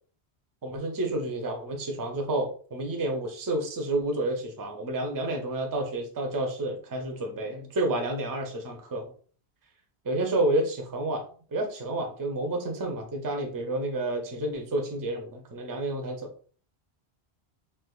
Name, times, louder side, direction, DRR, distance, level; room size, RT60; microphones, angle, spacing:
voice 1, 0.6-9.1 10.0-11.2 11.5-16.3, right 1 dB, 30° right, 3 dB, 0.4 m, -30 dB
3.3 x 2.8 x 2.3 m, 0.42 s
omnidirectional pair, 1.1 m